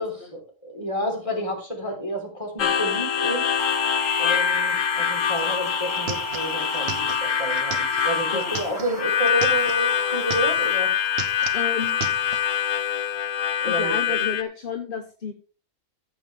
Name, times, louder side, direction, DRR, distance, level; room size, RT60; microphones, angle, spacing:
voice 1, 0.0-3.5 4.2-10.9 13.6-14.2, equal, 25° left, 1 dB, 3.9 m, -30 dB
Harmonica, 2.6-14.4, left 8 dB, 75° left, 1.2 m, -24 dB
sound 1, 3.6-13.3, equal, 25° right, 0.5 m, -35 dB
sound 2, 5.4-5.5 5.7-9.8 10.2-10.8 11.0-12.4, right 6 dB, 50° right, 1.1 m, -36 dB
voice 2, 11.5-12.0 13.6-15.3, left 6 dB, 45° left, 6 dB, 1.3 m, -31 dB
14.5 x 7.4 x 3.4 m, 0.34 s
omnidirectional pair, 1.4 m